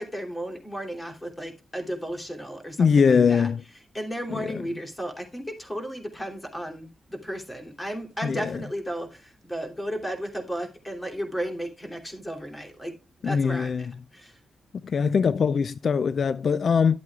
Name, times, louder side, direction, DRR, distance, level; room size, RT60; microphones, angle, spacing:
voice 1, 0.0-3.5 3.9-12.9 13.2-13.9 14.1-14.4, equal, 15° left, 3.0 m, -34 dB
voice 2, 2.8-3.6 4.3-4.6 8.2-8.6 13.2-13.9 14.8-17.0, left 6 dB, 60° left, 0.3 m, -22 dB
11.0 x 8.3 x 2.4 m
cardioid pair, 70°, 0 cm